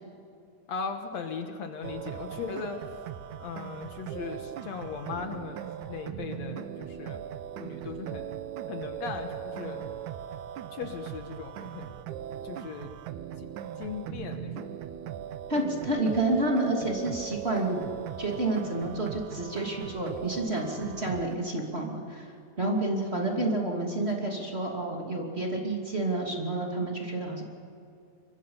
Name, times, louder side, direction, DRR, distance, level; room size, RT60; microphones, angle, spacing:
voice 1, 0.7-2.8 3.4-7.2 7.6-8.3 8.7-9.9 10.7-11.9 12.4-12.9 13.4-13.5 13.8-14.7 23.1-23.6, left 5 dB, 65° left, 5 dB, 2.4 m, -38 dB
sound 1, 1.8-21.4, right 10 dB, 85° right, 2.3 m, -39 dB
voice 2, 15.5-17.8 18.2-22.3 22.6-27.4, right 2 dB, 20° right, -1 dB, 2.6 m, -29 dB
26.5 x 23.5 x 5.6 m, 2.5 s
omnidirectional pair, 3.5 m